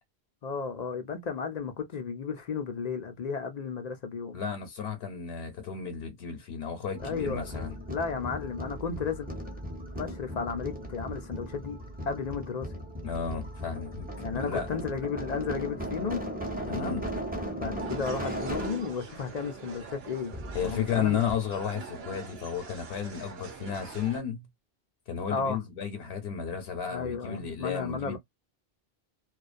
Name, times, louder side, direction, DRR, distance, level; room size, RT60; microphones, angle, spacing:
voice 1, 0.4-4.4 7.0-7.6 7.9-9.3 9.9-11.8 12.1-12.7 14.2-16.2 16.7-17.0 17.6-21.2 25.3-25.6 26.9-28.2, left 5 dB, 55° left, 0.5 m, -33 dB
voice 2, 4.3-7.8 13.0-14.1 14.3-14.7 16.7-17.0 20.5-24.5 25.1-28.2, left 7 dB, 80° left, 0.9 m, -33 dB
sound 1, 6.9-18.9 20.3-21.0 21.3-21.4, equal, 10° right, 0.7 m, -37 dB
sound 2, 17.8-24.2, right 5 dB, 75° right, 0.9 m, -44 dB
2.4 x 2.2 x 2.4 m
omnidirectional pair, 1.1 m